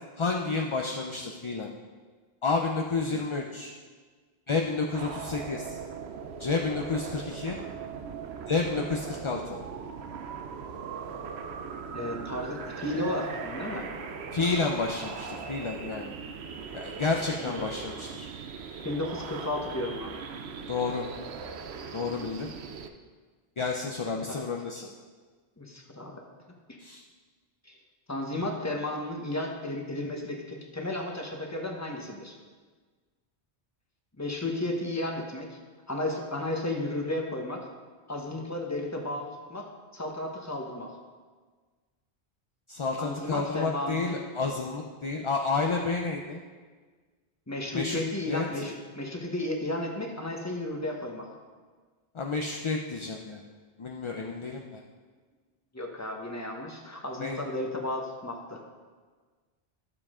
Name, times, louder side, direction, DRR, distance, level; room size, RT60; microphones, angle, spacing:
voice 1, 0.2-1.7 2.4-3.7 4.5-5.8 6.4-7.6 8.5-9.6 14.3-16.1 16.7-18.3 20.7-21.1 21.9-22.5 23.6-24.9 26.8-27.0 42.7-46.4 47.7-48.0 48.3-48.7 52.1-53.4 53.8-54.8 57.2-57.4, left 4 dB, 40° left, 1 dB, 0.5 m, -30 dB
sound 1, 4.9-22.9, right 5 dB, 80° right, 0.9 m, -39 dB
voice 2, 11.9-13.9 17.4-17.6 18.8-20.1 24.2-24.3 25.6-26.2 26.5-26.8 27.6-27.8 28.1-32.3 34.2-35.6 35.9-37.7 38.1-39.7 39.9-40.9 43.0-44.2 47.5-51.3 55.7-58.6, left 1 dB, 15° left, 0 dB, 1.1 m, -33 dB
12.0 x 7.2 x 3.7 m, 1.5 s
omnidirectional pair, 1.1 m